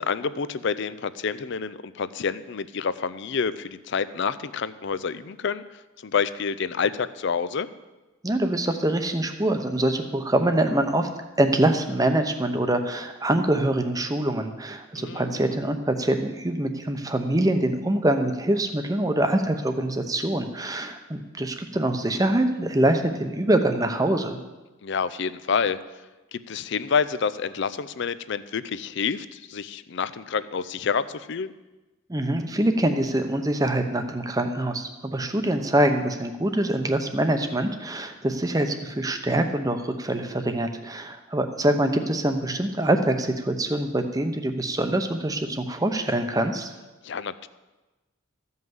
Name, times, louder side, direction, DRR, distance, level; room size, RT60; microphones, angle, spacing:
voice 1, 0.0-5.6 6.0-7.7 15.0-15.4 24.8-25.8 26.3-31.5 47.0-47.5, left 6 dB, 55° left, 15 dB, 0.5 m, -28 dB
voice 2, 8.2-11.1 11.4-24.4 32.1-46.7, right 1 dB, 15° right, 6 dB, 0.8 m, -24 dB
14.0 x 5.5 x 7.8 m, 1.1 s
head